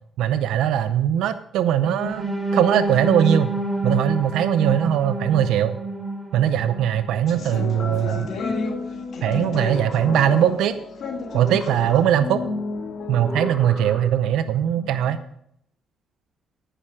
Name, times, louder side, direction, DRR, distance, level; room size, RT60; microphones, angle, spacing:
voice 1, 0.2-3.5 3.8-5.8 6.3-8.3 9.2-10.8 11.3-12.4 13.1-15.2, right 10 dB, 85° right, 11 dB, 0.6 m, -20 dB
sound 1, 1.8-7.8 8.2-8.4 8.8-9.0, right 2 dB, 10° right, 3.5 m, -28 dB
sound 2, 7.2-15.3, left 4 dB, 65° left, 2.3 m, -32 dB
sound 3, 9.5-10.9 11.2-12.5 13.2-14.5, left 1 dB, 20° left, 3.2 m, -38 dB
10.0 x 9.9 x 4.9 m, 0.71 s
cardioid pair, 90°, 0 cm